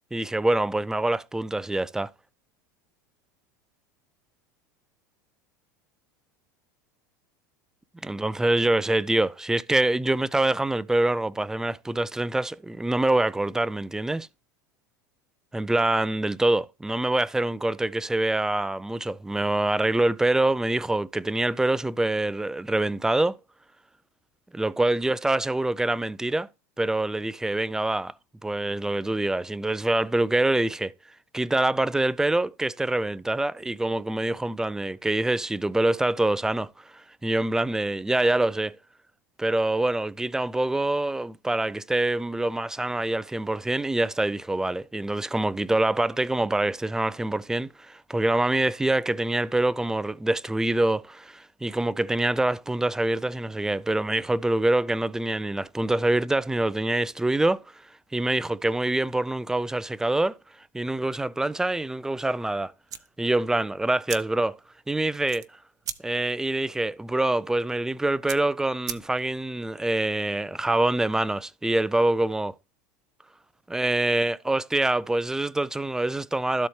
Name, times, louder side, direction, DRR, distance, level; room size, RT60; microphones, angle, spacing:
voice 1, 0.1-2.1 8.0-14.3 15.5-23.4 24.5-26.5 26.8-28.1 28.4-30.9 31.3-38.7 39.4-57.6 58.1-60.4 60.7-62.7 63.2-64.6 64.9-65.5 66.0-72.5 73.7-76.7, right 2 dB, 5° right, 0.3 m, -25 dB
sound 1, 62.8-69.5, right 9 dB, 35° right, 0.7 m, -41 dB
12.5 x 4.2 x 3.2 m
hypercardioid pair, 90°, 10 cm